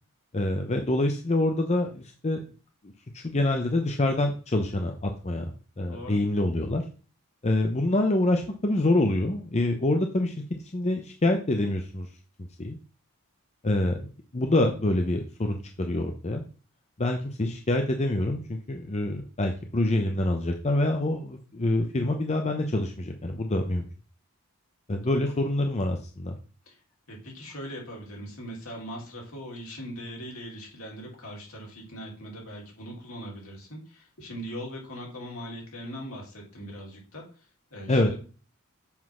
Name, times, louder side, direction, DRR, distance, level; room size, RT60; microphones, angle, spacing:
voice 1, 0.3-2.4 3.1-5.5 5.8-6.8 7.4-10.3 10.7-12.1 12.6-12.8 13.6-16.4 17.0-23.8 24.9-26.4 37.9-38.1, left 1 dB, 30° left, 4 dB, 0.7 m, -26 dB
voice 2, 5.9-6.2 25.0-25.3 26.6-26.8 27.1-38.2, equal, 70° left, -1 dB, 3.4 m, -40 dB
7.2 x 4.0 x 6.2 m, 0.38 s
head